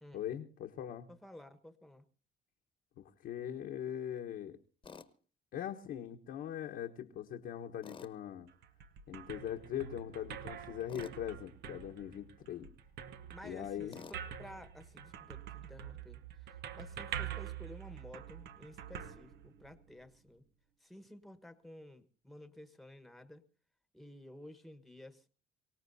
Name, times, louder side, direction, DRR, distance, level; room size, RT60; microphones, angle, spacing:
voice 1, 0.1-1.1 3.0-4.6 5.5-8.5 9.1-12.7 13.4-14.0, left 10 dB, 70° left, 0 dB, 1.2 m, -41 dB
voice 2, 1.1-2.0 13.3-20.4 20.8-23.4 23.9-25.3, left 1 dB, ahead, 9 dB, 1.3 m, -53 dB
Tools, 4.8-5.1 7.8-8.2 10.9-11.2 13.9-14.2, left 5 dB, 30° left, 1.1 m, -50 dB
sound 1, 8.5-20.0, right 9 dB, 75° right, 1.0 m, -46 dB
24.0 x 18.0 x 2.7 m, 0.37 s
cardioid pair, 110°, 17 cm